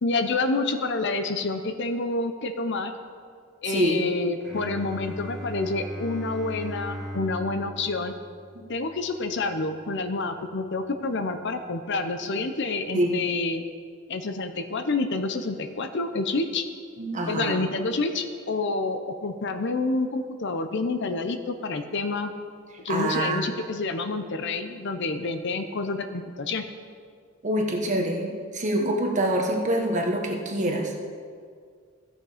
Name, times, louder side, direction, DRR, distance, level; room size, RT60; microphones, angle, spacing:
voice 1, 0.0-2.9 3.6-8.1 8.7-13.6 14.1-16.6 17.3-22.3 22.8-26.7, left 3 dB, 60° left, 8 dB, 0.7 m, -28 dB
voice 2, 3.6-4.0 12.9-13.1 17.0-17.6 22.9-23.4 27.4-30.9, right 1 dB, 35° right, 1 dB, 1.3 m, -25 dB
Bowed string instrument, 4.4-10.1, equal, 5° left, 2.0 m, -39 dB
14.5 x 6.5 x 5.0 m, 2.1 s
head